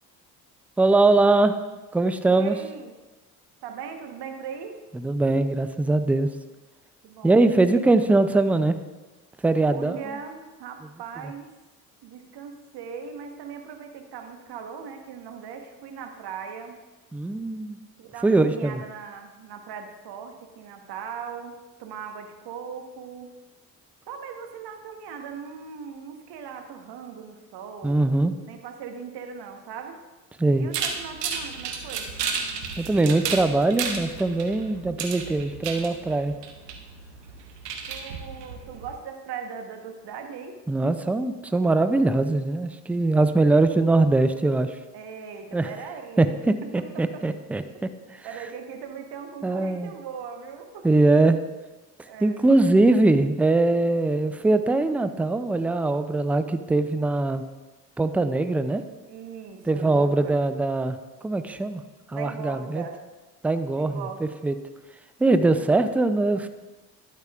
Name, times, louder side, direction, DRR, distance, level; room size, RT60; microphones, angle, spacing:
voice 1, 0.8-1.6 1.9-2.5 4.9-6.3 7.2-8.8 9.4-10.0 17.1-17.8 18.2-18.8 27.8-28.3 30.4-30.7 32.8-36.3 40.7-44.8 45.5-45.7 46.2-47.6 49.4-49.9 50.8-51.4 52.2-57.4 58.0-58.8 59.7-61.0 61.2-61.8 62.1-62.8 63.4-64.5 65.2-66.5, right 2 dB, 5° right, 11 dB, 0.3 m, -21 dB
voice 2, 2.3-2.9 3.6-4.7 7.0-7.4 9.6-11.5 12.0-16.8 18.0-23.3 24.1-28.0 28.5-30.0 30.6-32.1 37.9-40.6 44.9-46.3 46.8-47.2 48.2-50.9 51.1-51.2 52.1-52.4 52.8-52.9 59.1-60.4 62.1-63.0 63.8-64.4, right 6 dB, 55° right, 5 dB, 1.2 m, -39 dB
sound 1, 30.7-39.0, right 6 dB, 90° right, 0.8 m, -33 dB
12.0 x 8.4 x 2.4 m, 1.2 s
hypercardioid pair, 55°, 47 cm